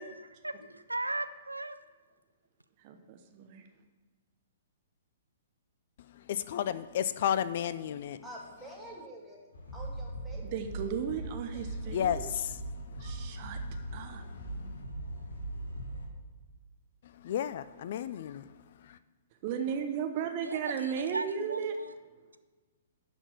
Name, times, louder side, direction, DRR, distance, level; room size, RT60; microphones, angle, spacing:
voice 1, 0.0-1.8 20.4-21.9, right 2 dB, 85° right, 0.4 m, -38 dB
voice 2, 2.8-3.7 10.5-12.2 13.0-13.6 13.9-14.2 19.4-21.8, right 7 dB, 40° right, 0.8 m, -35 dB
voice 3, 6.1-8.2 11.9-12.6 13.0-13.3 17.1-18.4 18.8-19.0, left 10 dB, 50° left, 0.3 m, -32 dB
voice 4, 8.2-9.4 9.7-10.5 11.3-11.4, right 1 dB, 5° right, 2.2 m, -47 dB
sound 1, 9.5-16.1, right 1 dB, 65° left, 1.4 m, -40 dB
11.5 x 4.3 x 6.7 m
figure-of-eight pair, 115°, 0 cm